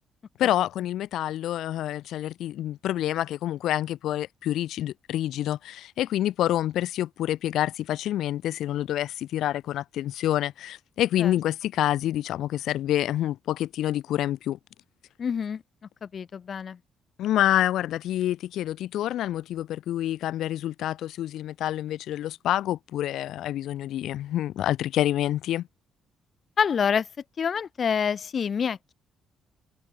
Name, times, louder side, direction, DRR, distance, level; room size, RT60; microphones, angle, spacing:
voice 1, 0.4-14.6 17.2-25.7, left 12 dB, 80° left, 1.1 m, -27 dB
voice 2, 15.2-15.6 16.0-16.8 26.6-27.1 27.4-28.9, left 7 dB, 50° left, 2.2 m, -27 dB
open air
cardioid pair, 90°, 0 cm